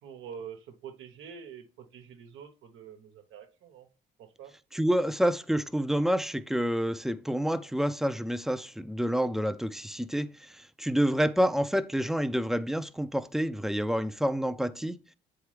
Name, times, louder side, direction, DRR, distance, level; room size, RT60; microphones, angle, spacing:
voice 1, 0.0-3.9 4.2-4.6, right 7 dB, 90° right, 1.0 m, -46 dB
voice 2, 4.7-15.0, equal, ahead, 0.5 m, -28 dB
7.5 x 4.8 x 3.2 m
cardioid pair, 90°, 20 cm